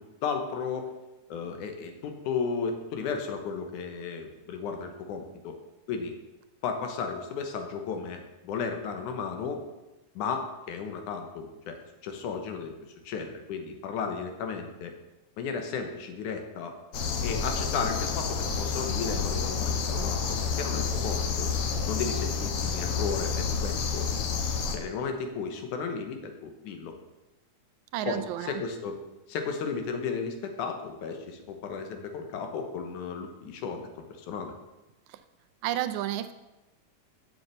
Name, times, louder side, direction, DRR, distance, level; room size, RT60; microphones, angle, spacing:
voice 1, 0.2-0.9 1.3-5.6 5.9-6.1 6.6-9.6 10.2-11.8 12.0-12.7 13.1-14.9 15.4-16.7 17.2-21.5 21.9-24.1 24.7-26.9 28.1-29.0 29.3-33.9 34.2-34.5, left 5 dB, 85° left, 5 dB, 2.6 m, -34 dB
sound 1, 16.9-24.8, left 5 dB, 65° left, 1.6 m, -29 dB
voice 2, 27.9-28.6 35.6-36.3, right 12 dB, 80° right, 10 dB, 1.8 m, -31 dB
7.1 x 6.6 x 8.0 m, 1.0 s
omnidirectional pair, 3.5 m